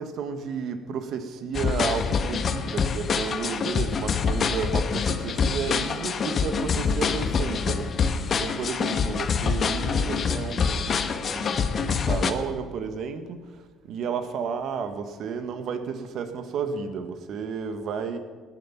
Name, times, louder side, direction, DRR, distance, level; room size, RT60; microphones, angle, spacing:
voice 1, 0.0-7.9 8.4-11.0 11.2-13.4 13.8-18.2, right 6 dB, 65° right, 9 dB, 1.4 m, -32 dB
sound 1, 1.5-12.3, left 5 dB, 50° left, 1.1 m, -26 dB
18.5 x 10.5 x 5.8 m, 1.5 s
supercardioid pair, 75°, 0 cm